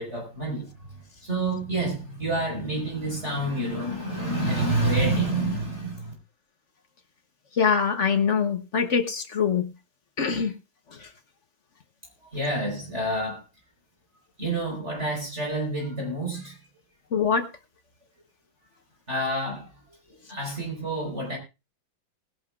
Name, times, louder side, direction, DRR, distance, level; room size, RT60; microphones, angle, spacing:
voice 1, 0.0-6.1 12.2-13.4 14.4-16.6 19.1-19.8 20.3-21.4, right 2 dB, 30° right, 5.1 m, -28 dB
voice 2, 7.5-9.7 10.2-10.6 10.9-11.1 17.1-17.5, left 6 dB, 45° left, 1.1 m, -24 dB
20.5 x 11.5 x 2.4 m
omnidirectional pair, 2.2 m